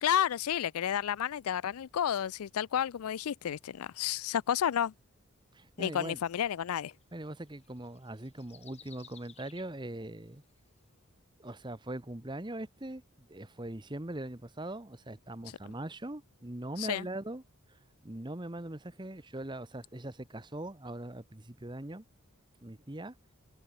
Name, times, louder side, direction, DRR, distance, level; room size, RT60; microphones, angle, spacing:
voice 1, 0.0-4.9 5.8-6.9 16.8-17.1, left 9 dB, 85° left, 0.4 m, -31 dB
voice 2, 5.5-6.2 7.1-10.4 11.4-17.4 18.0-22.0 22.6-23.1, right 1 dB, 20° right, 1.0 m, -41 dB
sound 1, 6.3-9.9 10.5-10.6, left 8 dB, 30° left, 2.7 m, -58 dB
open air
head